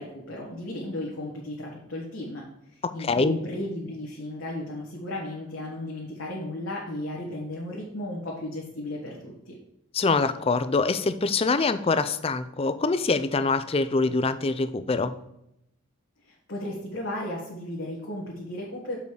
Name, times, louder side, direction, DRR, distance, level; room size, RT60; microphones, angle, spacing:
voice 1, 0.0-9.5 16.2-19.0, left 1 dB, 60° left, -4 dB, 1.7 m, -35 dB
voice 2, 3.0-3.4 9.9-15.2, left 3 dB, 25° left, 12 dB, 0.4 m, -24 dB
6.9 x 5.2 x 4.8 m, 0.82 s
head